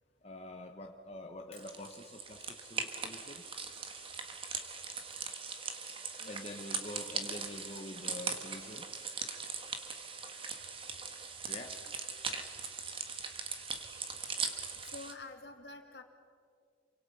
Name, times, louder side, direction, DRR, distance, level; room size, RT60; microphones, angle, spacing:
voice 1, 0.2-3.4 6.2-8.9 11.5-11.8, left 1 dB, 35° left, 2 dB, 1.2 m, -46 dB
sound 1, 1.6-15.1, right 5 dB, 30° right, 1.7 m, -40 dB
voice 2, 6.2-6.5 13.8-13.9 14.8-16.0, left 3 dB, 65° left, 4 dB, 2.8 m, -48 dB
28.5 x 25.0 x 5.6 m, 2.3 s
head